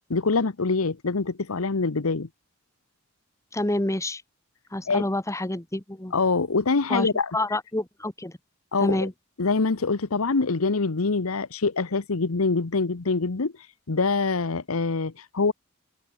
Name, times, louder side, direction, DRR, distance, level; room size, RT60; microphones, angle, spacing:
voice 1, 0.1-2.3 4.9-5.0 6.1-7.3 8.7-9.1 9.4-13.5 13.9-15.5, left 4 dB, 85° left, 1.0 m, -24 dB
voice 2, 3.5-4.2 4.7-6.1 6.9-8.3 8.8-9.1, left 1 dB, 15° left, 1.5 m, -28 dB
head